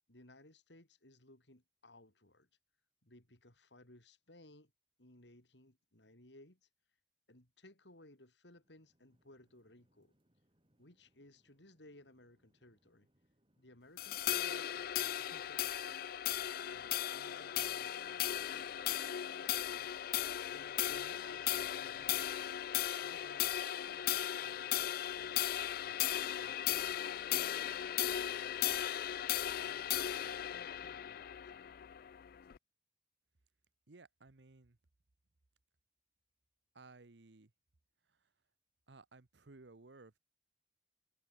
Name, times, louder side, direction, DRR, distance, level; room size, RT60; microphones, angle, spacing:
voice 1, 0.1-2.5 3.0-4.7 5.0-6.7 7.3-10.1 10.8-13.1 13.6-16.1 16.7-19.0 19.4-20.0 20.5-22.5 23.0-26.1 26.4-27.0 28.0-28.3 29.4-31.8, left 2 dB, 75° left, 5.1 m, -61 dB
sound 1, 8.4-27.3, right 1 dB, 30° right, 6.4 m, -76 dB
sound 2, 14.0-32.6, left 12 dB, 55° left, 0.4 m, -37 dB
voice 2, 33.9-34.8 36.7-37.5 38.0-38.3 38.9-40.2, right 3 dB, 75° right, 1.1 m, -58 dB
head